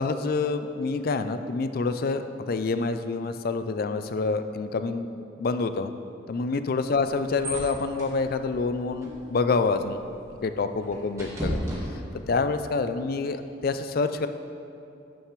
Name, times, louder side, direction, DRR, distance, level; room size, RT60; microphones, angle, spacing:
voice 1, 0.0-5.9 6.3-10.0 10.4-11.6 12.3-14.3, left 4 dB, 50° left, 10 dB, 0.4 m, -27 dB
sound 1, 6.7-12.5, equal, 15° right, 1.5 m, -37 dB
12.5 x 6.6 x 3.2 m, 2.6 s
head